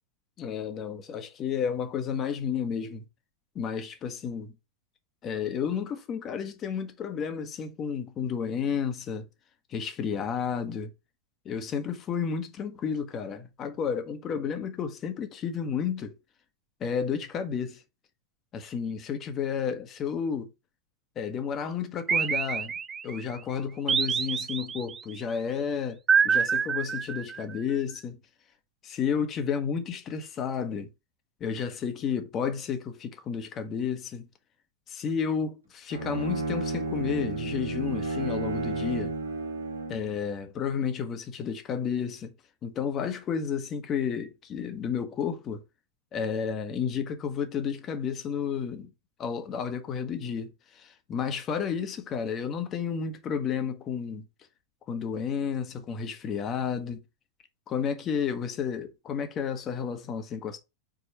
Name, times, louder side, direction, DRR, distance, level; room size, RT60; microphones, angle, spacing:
voice 1, 0.4-3.0 3.5-4.5 5.2-9.3 9.7-10.9 11.4-16.2 16.8-17.8 18.5-20.5 21.2-22.7 23.0-26.0 26.2-28.2 28.8-30.9 31.4-34.3 34.9-39.1 39.9-42.3 42.6-45.6 46.1-48.9 49.2-54.3 54.9-57.0 57.7-60.6, left 7 dB, 30° left, 1.2 m, -31 dB
sound 1, 22.1-23.2 23.9-25.0 26.1-27.6, right 6 dB, 20° right, 0.3 m, -26 dB
Bowed string instrument, 35.9-40.1, right 3 dB, 80° right, 1.2 m, -32 dB
5.0 x 4.4 x 4.2 m
figure-of-eight pair, 90°, 0 cm